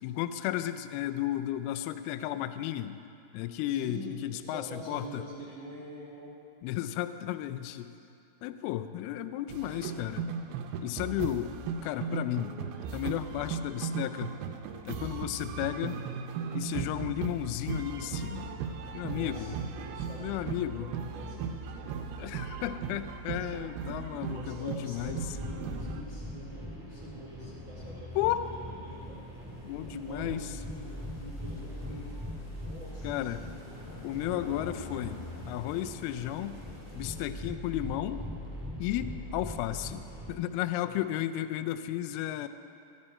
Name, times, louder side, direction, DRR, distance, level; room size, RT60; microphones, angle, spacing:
voice 1, 0.0-3.0 3.3-5.2 6.6-7.9 8.4-10.3 10.8-11.6 11.8-12.5 12.9-14.4 14.9-16.0 16.5-18.6 18.9-19.6 20.2-20.9 22.2-25.2 28.2-28.5 29.6-30.5 33.0-33.4 34.0-35.2 35.5-36.6 36.9-38.2 38.8-42.5, left 13 dB, 90° left, 10 dB, 2.2 m, -33 dB
voice 2, 3.7-6.4 12.1-12.3 19.0-22.0 24.3-29.2 29.9-32.0 32.6-33.6 40.8-40.9, right 1 dB, 55° right, -6 dB, 1.3 m, -45 dB
sound 1, 9.5-26.0, right 6 dB, 80° right, 2.2 m, -37 dB
sound 2, 25.0-40.3, left 1 dB, ahead, 1.3 m, -41 dB
sound 3, 28.4-37.3, left 1 dB, 15° left, 1.8 m, -50 dB
15.0 x 11.0 x 4.3 m, 2.5 s
omnidirectional pair, 4.9 m